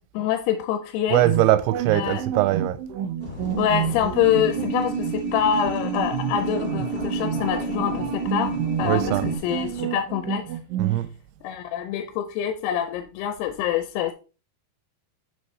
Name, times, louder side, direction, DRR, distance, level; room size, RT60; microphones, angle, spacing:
voice 1, 0.1-1.3 1.9-2.2 3.6-10.4 11.4-14.1, left 9 dB, 85° left, 2.7 m, -25 dB
voice 2, 1.1-2.8 8.8-9.3 10.8-11.1, right 14 dB, 90° right, 2.6 m, -21 dB
sound 1, 1.2-11.0, right 9 dB, 75° right, 2.2 m, -30 dB
sound 2, 3.2-9.8, left 2 dB, 25° left, 1.1 m, -38 dB
sound 3, 4.2-9.4, right 4 dB, 30° right, 1.8 m, -30 dB
7.9 x 6.2 x 3.2 m
omnidirectional pair, 4.6 m